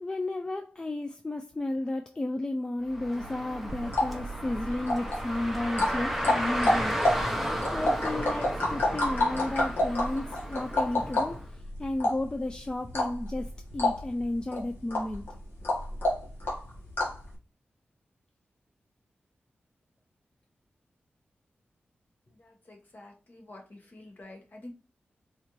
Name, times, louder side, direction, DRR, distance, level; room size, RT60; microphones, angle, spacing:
voice 1, 0.0-7.0 7.7-11.4 11.8-13.5 13.7-15.2, left 2 dB, 20° left, 0.3 m, -33 dB
Car, 2.9-11.4, equal, ahead, 0.8 m, -34 dB
sound 1, 3.7-17.3, left 1 dB, 70° left, 1.3 m, -30 dB
voice 2, 22.4-24.7, left 1 dB, 50° left, 1.2 m, -48 dB
4.2 x 2.5 x 3.0 m
cardioid pair, 70°, 4 cm